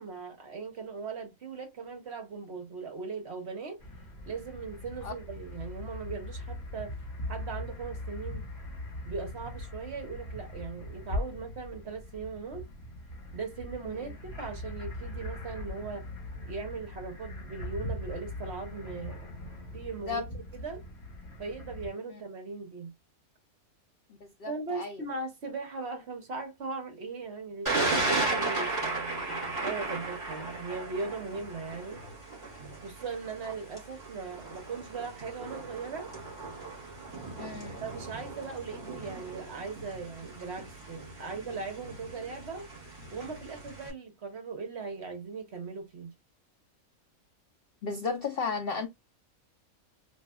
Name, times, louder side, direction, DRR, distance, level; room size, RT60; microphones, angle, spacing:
voice 1, 0.0-3.8 4.3-7.0 7.3-8.4 9.1-12.7 13.3-16.1 16.4-19.2 19.7-20.8 21.4-22.9 24.5-32.0 32.8-36.1 37.8-42.7 43.1-46.1, right 4 dB, 50° right, 1.0 m, -39 dB
sound 1, 3.8-21.9, left 1 dB, 25° left, 2.0 m, -40 dB
voice 2, 24.2-25.0 37.4-37.8 47.8-48.9, left 5 dB, 65° left, 0.5 m, -34 dB
Thunder, 27.7-43.9, right 3 dB, 20° right, 2.8 m, -36 dB
4.6 x 2.7 x 2.2 m
omnidirectional pair, 1.6 m